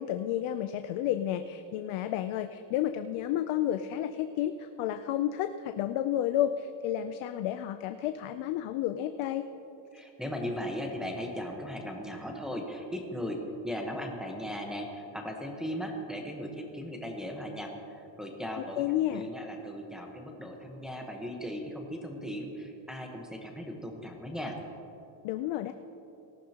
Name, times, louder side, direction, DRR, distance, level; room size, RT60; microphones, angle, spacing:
voice 1, 0.0-9.5 18.6-19.3 25.2-25.7, left 11 dB, 85° left, 9 dB, 0.6 m, -31 dB
voice 2, 9.9-13.4 13.6-24.6, equal, ahead, 0 dB, 1.1 m, -37 dB
18.5 x 14.0 x 2.9 m, 2.9 s
cardioid pair, 165°, 47 cm